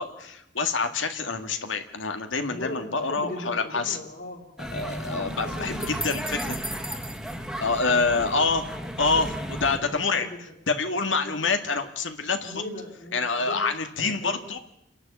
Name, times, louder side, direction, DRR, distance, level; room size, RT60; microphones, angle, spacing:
voice 1, 0.0-4.0 4.6-5.7 6.0-6.6 7.6-8.7 9.0-12.6 13.1-14.6, left 4 dB, 90° left, 7 dB, 1.9 m, -27 dB
voice 2, 2.4-4.4 5.0-6.4 9.7-10.4 11.2-11.3 12.4-13.6 14.0-14.4, left 1 dB, 50° left, -5 dB, 3.6 m, -39 dB
sound 1, 4.6-9.8, equal, ahead, 1.5 m, -34 dB
28.5 x 11.0 x 8.4 m, 0.80 s
head